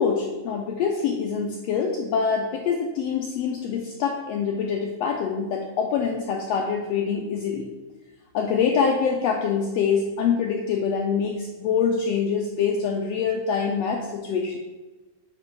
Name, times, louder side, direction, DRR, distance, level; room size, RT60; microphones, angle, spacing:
voice 1, 0.0-7.7 8.3-14.6, left 6 dB, 85° left, 1 dB, 1.4 m, -25 dB
8.7 x 3.3 x 4.6 m, 1.2 s
omnidirectional pair, 3.5 m